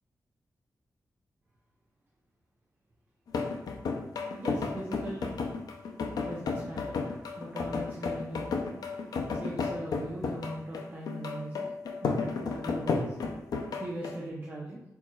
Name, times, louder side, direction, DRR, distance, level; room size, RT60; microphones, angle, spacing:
sound 1, 3.3-14.2, left 4 dB, 90° left, 0.5 m, -33 dB
voice 1, 4.4-5.3 6.2-8.6 9.3-11.7 12.0-13.2 13.8-14.8, right 1 dB, 30° right, -5 dB, 0.7 m, -40 dB
4.6 x 4.1 x 2.3 m, 0.85 s
wide cardioid pair, 155°, 6 cm